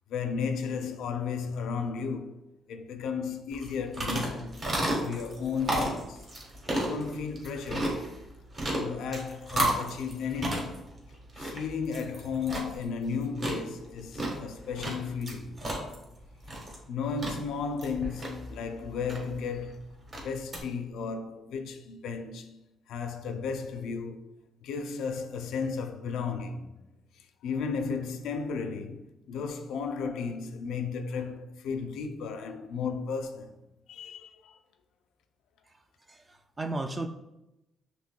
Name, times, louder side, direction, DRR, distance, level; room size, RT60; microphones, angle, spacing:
voice 1, 0.1-2.4 2.7-4.6 5.0-6.3 6.8-8.0 8.8-10.9 11.4-15.6 16.9-19.9 20.2-22.6 22.9-26.7 27.2-33.5 33.9-34.6, left 5 dB, 80° left, 0.4 m, -34 dB
sound 1, 3.5-20.6, right 1 dB, 40° right, 1.4 m, -34 dB
voice 2, 36.1-37.1, right 2 dB, 25° right, 0.3 m, -34 dB
6.1 x 3.0 x 2.2 m
cardioid pair, 90°, 0 cm